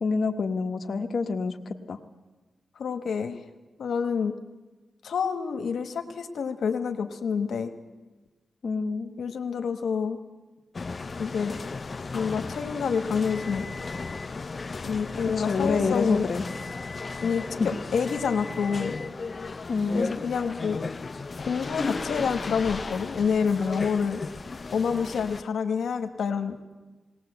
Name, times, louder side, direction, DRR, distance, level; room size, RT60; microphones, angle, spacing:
voice 1, 0.0-2.0 8.6-9.1 15.4-16.4 19.7-20.1, left 4 dB, 65° left, 4 dB, 1.2 m, -27 dB
voice 2, 2.8-3.4 3.8-4.3 5.0-7.7 9.2-10.2 11.2-11.6 12.1-13.6 14.8-16.3 17.2-19.0 19.9-20.8 21.4-24.2 24.7-26.6, left 6 dB, 85° left, 6 dB, 1.3 m, -28 dB
sound 1, 10.7-25.4, left 4 dB, 45° left, 0.8 m, -35 dB
19.0 x 19.0 x 8.0 m, 1.2 s
cardioid pair, 70°, 0 cm